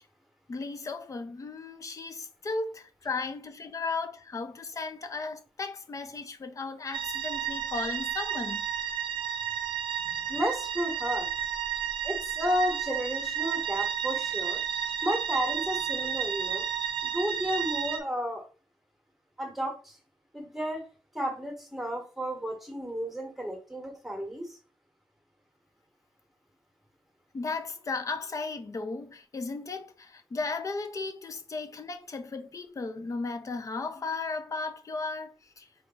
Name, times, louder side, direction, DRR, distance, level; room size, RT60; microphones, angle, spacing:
voice 1, 0.5-8.7 27.3-35.7, left 3 dB, 35° left, 0.5 m, -35 dB
sound 1, 6.9-18.0, right 8 dB, 70° right, 0.5 m, -32 dB
voice 2, 10.3-11.3 12.0-14.6 15.0-16.6 17.0-18.4 19.4-20.0 20.3-20.9 21.1-24.6, equal, ahead, 1.2 m, -32 dB
4.6 x 2.5 x 3.9 m
wide cardioid pair, 165°, 9 cm